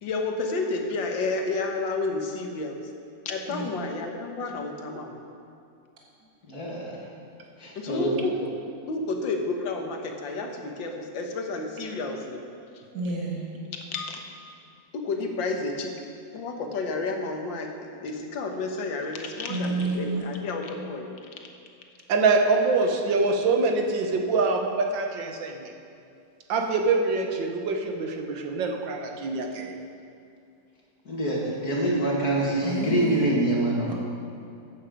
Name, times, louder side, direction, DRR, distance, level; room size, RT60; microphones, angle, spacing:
voice 1, 0.0-2.8 3.3-5.2 7.8-12.4 13.7-14.2 14.9-15.9 16.3-17.7 18.0-21.1, left 3 dB, 75° left, 3 dB, 1.9 m, -31 dB
voice 2, 6.5-7.0 7.6-8.1 31.1-33.9, right 1 dB, 50° left, -3 dB, 2.5 m, -25 dB
voice 3, 12.9-13.5 19.5-20.4 32.6-33.3 33.9-34.0, right 2 dB, 50° right, -2 dB, 1.9 m, -30 dB
voice 4, 22.1-25.7 26.5-29.7, right 3 dB, 75° right, 3 dB, 1.8 m, -24 dB
13.5 x 8.9 x 5.2 m, 2.5 s
omnidirectional pair, 2.0 m